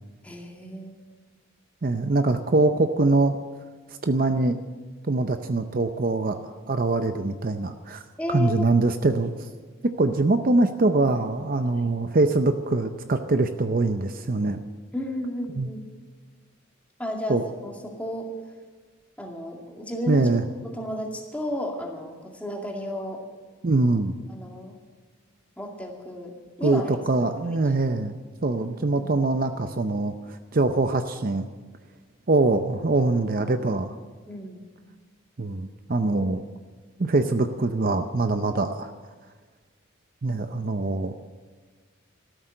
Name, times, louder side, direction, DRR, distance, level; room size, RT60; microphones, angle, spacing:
voice 1, 0.2-0.9 8.2-8.7 11.7-12.0 14.9-15.8 17.0-18.3 19.2-20.3 20.6-23.2 24.3-24.8 25.6-26.3 26.6-26.9 28.6-29.1 34.3-34.6, left 1 dB, 5° left, 0 dB, 2.2 m, -33 dB
voice 2, 1.8-3.4 4.0-4.6 5.1-8.0 8.3-9.3 9.8-14.6 15.5-15.7 17.3-17.4 20.1-20.4 23.6-24.1 26.6-28.1 28.4-31.4 32.3-34.0 35.4-36.4 37.0-38.9 40.2-41.2, right 2 dB, 45° right, 8 dB, 0.6 m, -23 dB
14.0 x 13.0 x 7.7 m, 1.4 s
head